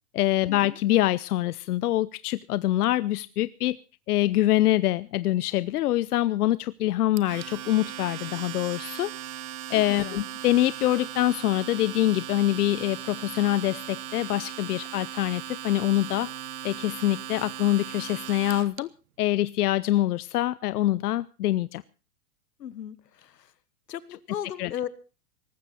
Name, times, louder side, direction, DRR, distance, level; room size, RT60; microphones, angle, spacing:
voice 1, 0.1-3.8 4.1-9.1 9.7-16.3 16.6-18.9 19.2-21.8 24.6-24.7, left 14 dB, 70° left, 17 dB, 0.7 m, -25 dB
Domestic sounds home sounds, 7.2-18.8, right 11 dB, 60° right, 1.4 m, -38 dB
voice 2, 9.7-10.3 22.6-23.5 23.9-24.9, left 10 dB, 85° left, 16 dB, 1.6 m, -36 dB
19.0 x 15.0 x 4.2 m, 0.35 s
hypercardioid pair, 140°, 48 cm